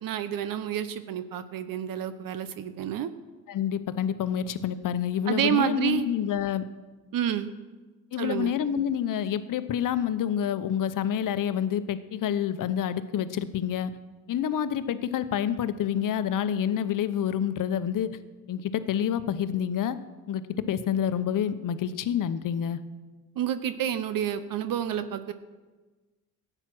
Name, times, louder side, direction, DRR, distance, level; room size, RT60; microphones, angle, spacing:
voice 1, 0.0-3.1 5.3-6.0 7.1-7.5 8.2-8.5 23.4-25.3, right 10 dB, 65° right, 12 dB, 0.8 m, -29 dB
voice 2, 3.5-6.6 8.1-13.9 14.3-18.1 18.5-20.0 20.3-22.8, left 9 dB, 60° left, 12 dB, 0.9 m, -28 dB
13.0 x 8.9 x 6.1 m, 1.3 s
supercardioid pair, 75°, 36 cm